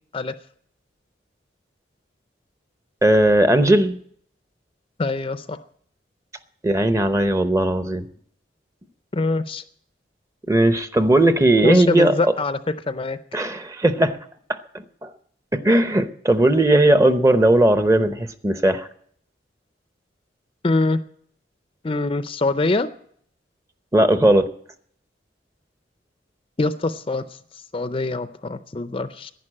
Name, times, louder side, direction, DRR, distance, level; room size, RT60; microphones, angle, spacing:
voice 1, 3.0-4.0 6.6-8.1 10.5-12.3 13.3-14.2 15.0-15.1 15.5-18.9 23.9-24.5, right 1 dB, 15° right, 10 dB, 0.7 m, -17 dB
voice 2, 5.0-5.6 9.1-9.6 11.6-12.6 12.9-13.2 20.6-21.0 21.8-22.9 26.6-27.2 27.7-29.3, left 2 dB, 30° left, 12 dB, 0.5 m, -23 dB
11.0 x 10.5 x 8.7 m, 0.64 s
head